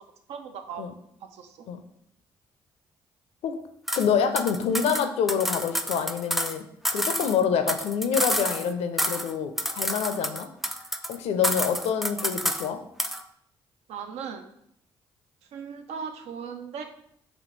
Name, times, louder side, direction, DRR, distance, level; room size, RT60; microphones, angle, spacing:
voice 1, 0.3-0.8 1.3-1.7 13.9-14.5 15.5-16.8, right 6 dB, 75° right, 6 dB, 0.5 m, -37 dB
voice 2, 3.9-6.6 6.9-10.5 11.1-12.8, left 7 dB, 75° left, 8 dB, 0.4 m, -26 dB
sound 1, 3.9-4.1 4.4-6.6 6.8-8.7 9.0-9.3 9.6-11.2 11.4-12.7 13.0-13.2, equal, ahead, 0.3 m, -29 dB
4.2 x 2.8 x 3.1 m, 0.73 s
supercardioid pair, 55°, 11 cm